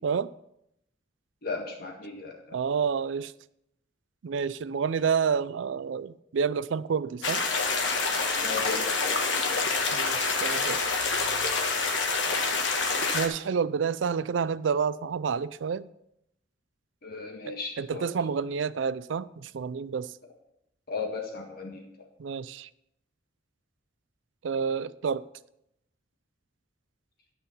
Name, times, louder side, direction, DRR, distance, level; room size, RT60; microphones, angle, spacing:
voice 1, 1.4-2.4 8.4-9.7 12.2-12.5 17.0-18.1 20.9-22.1, left 4 dB, 55° left, 1.6 m, -36 dB
voice 2, 2.5-3.3 4.2-7.4 9.9-10.8 13.1-15.9 17.8-20.1 22.2-22.7 24.4-25.2, right 6 dB, 85° right, 0.4 m, -29 dB
sound 1, 7.2-13.3, left 4 dB, 85° left, 1.5 m, -27 dB
12.5 x 5.6 x 5.5 m
head